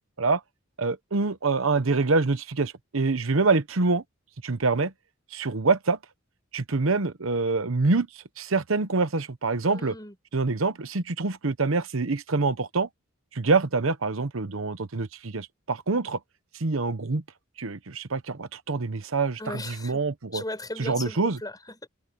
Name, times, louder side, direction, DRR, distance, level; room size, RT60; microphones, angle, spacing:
voice 1, 0.8-4.0 4.4-4.9 5.3-6.0 6.5-9.9 10.3-12.9 13.3-16.2 16.5-17.2 17.6-20.4 20.8-21.4, right 3 dB, 70° right, 1.0 m, -25 dB
voice 2, 9.6-10.1 19.4-20.0 20.3-21.9, left 2 dB, 20° left, 7.7 m, -37 dB
open air
head